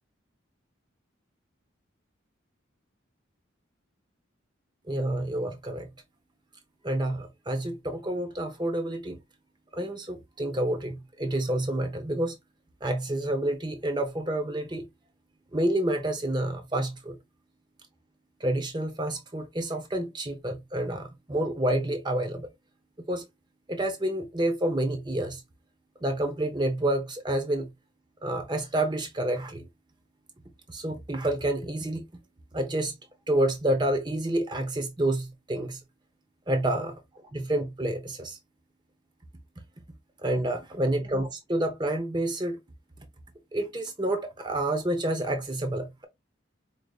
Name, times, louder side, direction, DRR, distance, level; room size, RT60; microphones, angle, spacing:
voice 1, 4.9-5.9 6.8-9.2 9.7-12.3 12.8-14.9 15.5-17.2 18.4-22.5 23.1-23.2 23.7-25.4 26.0-27.7 28.2-29.6 30.7-32.0 32.5-32.9 33.3-35.8 36.5-36.9 37.3-38.4 40.2-42.6 43.5-46.1, right 1 dB, 20° right, 0.7 m, -28 dB
4.9 x 2.8 x 2.3 m
head